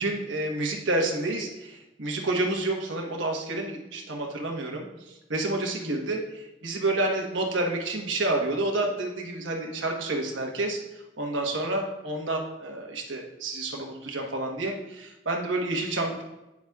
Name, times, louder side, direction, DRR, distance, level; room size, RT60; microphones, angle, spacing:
voice 1, 0.0-10.8 11.2-16.2, right 2 dB, 80° right, 1 dB, 1.2 m, -29 dB
9.5 x 7.2 x 2.4 m, 0.98 s
head